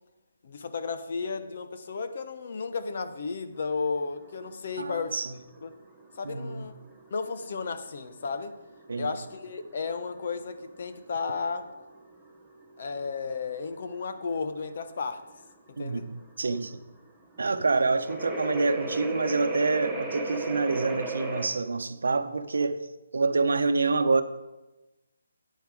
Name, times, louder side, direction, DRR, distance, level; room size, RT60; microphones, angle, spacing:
voice 1, 0.4-5.2 5.6-5.7 6.2-6.7 7.1-8.5 9.0-11.7 12.8-15.3 15.8-16.0, left 4 dB, 40° left, 0.8 m, -33 dB
sound 1, 3.5-21.5, right 2 dB, ahead, 0.9 m, -38 dB
voice 2, 4.8-5.3 6.2-6.7 8.9-9.1 15.8-16.8 17.4-22.8 23.1-24.2, right 3 dB, 75° right, 0.8 m, -27 dB
9.4 x 9.0 x 4.8 m
hypercardioid pair, 175°, 0 cm